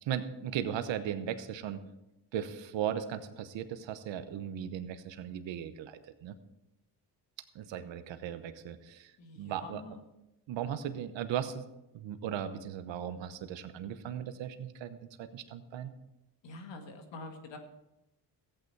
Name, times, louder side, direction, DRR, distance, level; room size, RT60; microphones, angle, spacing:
voice 1, 0.0-1.8 2.3-6.4 7.5-9.8 10.5-11.6 11.9-15.9, right 9 dB, 85° right, 10 dB, 1.0 m, -37 dB
voice 2, 9.2-10.2 16.4-17.6, left 2 dB, 75° left, 5 dB, 2.0 m, -46 dB
14.5 x 8.7 x 4.6 m, 0.92 s
cardioid pair, 65°, 44 cm